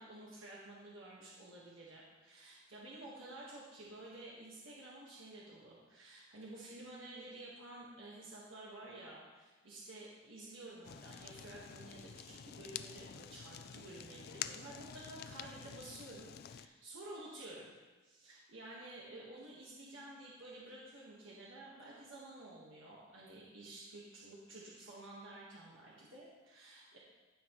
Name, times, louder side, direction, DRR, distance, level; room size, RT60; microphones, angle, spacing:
voice 1, 0.0-17.7 18.0-27.0, right 2 dB, 85° right, -5 dB, 1.4 m, -52 dB
Fire, 10.8-16.7, left 9 dB, 50° left, 0.3 m, -48 dB
15.5 x 5.6 x 3.1 m, 1.3 s
head